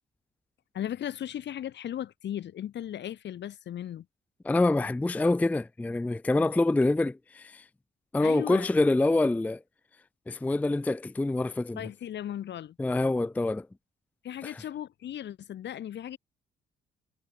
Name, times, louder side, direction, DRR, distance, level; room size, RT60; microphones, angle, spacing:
voice 1, 0.7-4.1 8.2-8.7 11.8-12.8 14.2-16.2, left 11 dB, 60° left, 1.2 m, -36 dB
voice 2, 4.4-7.6 8.1-9.6 10.3-11.9 12.8-13.7 14.4-14.6, left 2 dB, 10° left, 0.4 m, -26 dB
cardioid pair, 90°, 20 cm